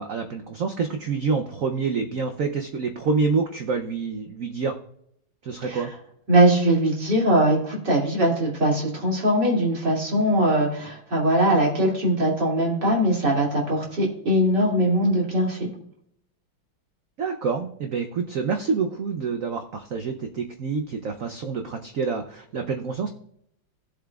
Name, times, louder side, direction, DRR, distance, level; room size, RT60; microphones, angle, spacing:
voice 1, 0.0-4.8 5.4-5.9 17.2-23.1, right 5 dB, 75° right, 6 dB, 0.7 m, -27 dB
voice 2, 6.3-15.7, right 1 dB, 55° right, -3 dB, 3.2 m, -21 dB
15.5 x 7.5 x 2.4 m, 0.71 s
omnidirectional pair, 2.2 m